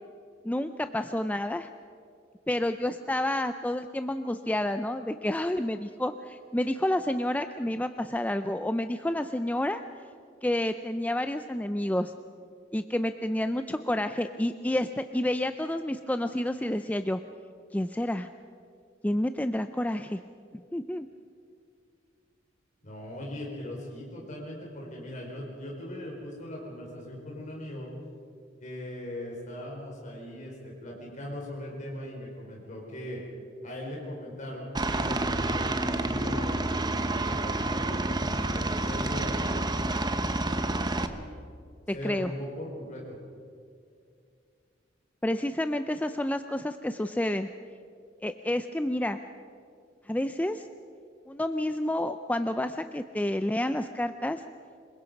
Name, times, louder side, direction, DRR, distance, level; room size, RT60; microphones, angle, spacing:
voice 1, 0.4-1.7 2.5-9.8 10.4-12.1 12.7-17.2 17.7-18.3 19.0-20.2 20.5-21.1 41.9-42.3 45.2-47.5 48.2-49.2 50.1-50.7 51.3-54.4, left 1 dB, 10° left, 9 dB, 0.5 m, -29 dB
voice 2, 22.8-27.9 28.6-33.2 33.6-36.6 37.1-39.6 41.9-43.2, left 1 dB, 40° left, -3 dB, 4.8 m, -39 dB
Aircraft, 34.7-41.1, right 2 dB, 20° right, 1.0 m, -29 dB
26.5 x 22.5 x 5.3 m, 2.3 s
head